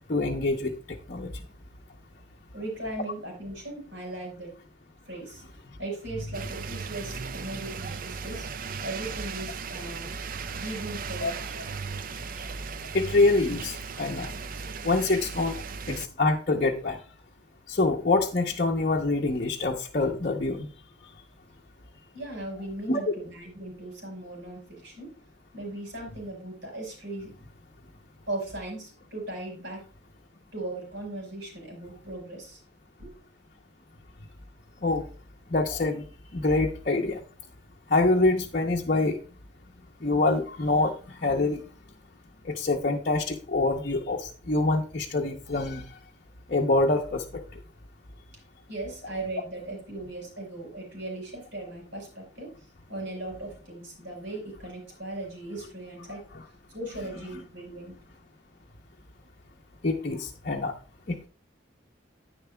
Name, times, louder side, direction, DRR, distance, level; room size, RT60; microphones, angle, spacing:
voice 1, 0.1-1.3 11.2-11.3 12.9-14.3 14.8-15.6 15.9-17.0 17.7-20.7 22.9-23.0 34.8-35.0 35.5-36.0 36.3-37.2 37.9-39.2 40.0-41.6 42.4-45.8 46.5-47.4 59.8-60.7 61.1-61.3, left 2 dB, 45° left, -2 dB, 0.8 m, -25 dB
voice 2, 2.5-4.5 5.1-5.4 5.8-8.5 8.8-10.1 10.5-11.6 22.1-25.1 25.5-27.3 28.3-29.8 30.5-32.6 33.0-33.1 48.7-52.5 52.9-56.2 56.7-58.0, right 2 dB, 70° right, 0 dB, 5.1 m, -38 dB
sound 1, 6.3-16.1, right 5 dB, 45° right, 0.4 m, -37 dB
10.5 x 9.8 x 2.2 m, 0.37 s
head